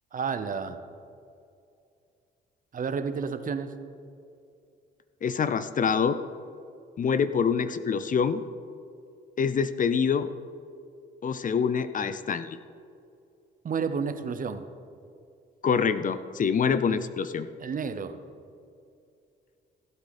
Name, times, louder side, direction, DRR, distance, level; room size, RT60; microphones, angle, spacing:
voice 1, 0.1-0.8 2.7-3.7 13.6-14.6 16.9-17.0 17.6-18.2, right 6 dB, 45° right, 10 dB, 0.8 m, -31 dB
voice 2, 5.2-6.2 7.0-8.4 9.4-10.3 11.2-12.6 15.6-17.5, left 6 dB, 40° left, 13 dB, 0.5 m, -25 dB
16.0 x 8.2 x 4.2 m, 2.5 s
cardioid pair, 90°, 20 cm